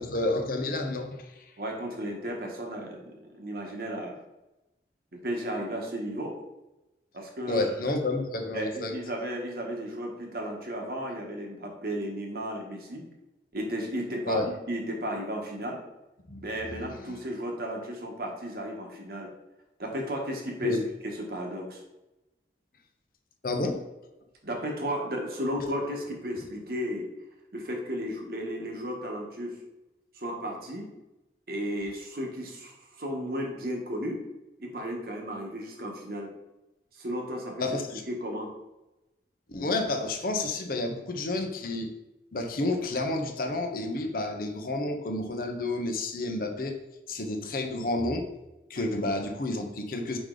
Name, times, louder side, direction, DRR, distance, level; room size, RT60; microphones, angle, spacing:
voice 1, 0.1-1.4 7.5-8.9 14.3-14.5 16.3-16.4 16.7-17.2 20.6-20.8 23.4-23.8 37.6-38.0 39.5-41.9 42.3-46.7 47.1-48.3 48.7-50.2, left 2 dB, 55° left, 4 dB, 0.8 m, -30 dB
voice 2, 1.6-4.2 5.1-6.4 7.1-7.9 8.5-13.1 13.5-15.8 16.4-19.3 19.8-20.8 21.0-21.8 24.4-27.1 27.5-29.6 30.1-30.9 31.5-34.2 34.6-36.3 36.9-37.7 38.1-38.5 48.7-48.9, equal, 55° right, 1 dB, 1.2 m, -34 dB
5.1 x 4.9 x 3.9 m, 0.98 s
head